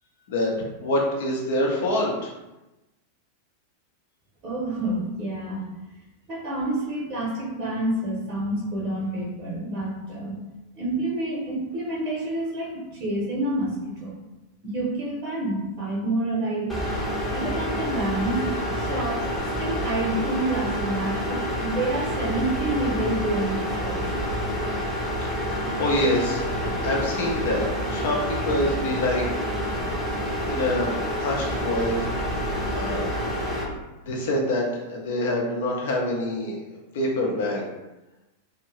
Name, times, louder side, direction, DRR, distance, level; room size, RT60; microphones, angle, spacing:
voice 1, 0.8-2.3 25.2-25.3 25.8-26.5 26.8-29.2 30.2-32.1 32.7-33.1 34.0-36.6 36.9-37.7, left 1 dB, 55° left, -1 dB, 0.7 m, -26 dB
voice 2, 4.4-5.7 6.3-10.4 10.7-14.2 14.6-16.8 17.3-18.5 18.7-19.2 19.6-24.0, right 1 dB, 35° right, -6 dB, 0.9 m, -28 dB
sound 1, 16.7-33.6, equal, ahead, 0.8 m, -28 dB
2.6 x 2.1 x 3.1 m, 1.0 s
figure-of-eight pair, 90°, 0 cm